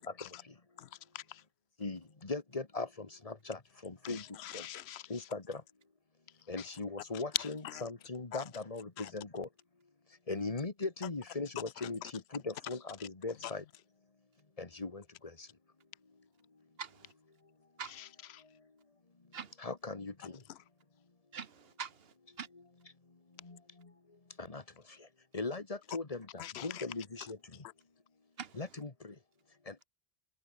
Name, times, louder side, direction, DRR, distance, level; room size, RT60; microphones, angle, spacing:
voice 1, 1.8-4.2 4.5-4.6 5.1-5.6 6.5-9.5 10.3-12.0 12.3-13.6 14.6-15.0 19.6-20.1 24.4-24.6 25.3-25.6 25.9-26.3 26.6-27.4 28.5-28.9 29.7-29.8, left 3 dB, 35° left, 1.7 m, -39 dB
voice 2, 4.0-5.0 7.7-7.8 8.3-8.4 9.0-9.1 17.9-18.4 26.4-26.8, left 12 dB, 85° left, 0.9 m, -45 dB
voice 3, 16.8-17.1 17.8-18.0 19.3-19.5 21.3-22.5 28.4-28.6, right 6 dB, 70° right, 1.4 m, -44 dB
omnidirectional pair, 1.1 m